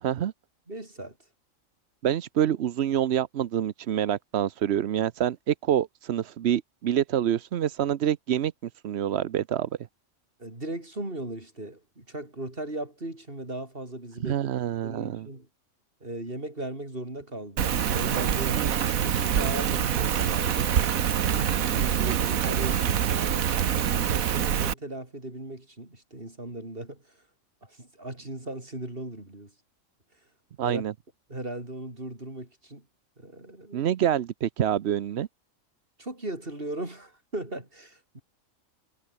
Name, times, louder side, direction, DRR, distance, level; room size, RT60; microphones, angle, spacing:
voice 1, 0.0-0.3 2.0-9.7 14.2-15.3 18.6-18.7 21.3-21.4 30.6-30.9 33.7-35.3, right 10 dB, 60° right, 0.9 m, -27 dB
voice 2, 0.7-1.2 10.4-14.4 14.8-15.5 16.0-18.6 19.0-20.8 21.7-23.5 23.9-27.0 27.6-29.5 30.6-30.8 31.3-32.8 33.2-33.9 36.0-38.2, right 1 dB, 40° right, 5.6 m, -37 dB
Rain, 17.6-24.7, right 8 dB, 85° right, 1.6 m, -25 dB
omnidirectional pair, 1.4 m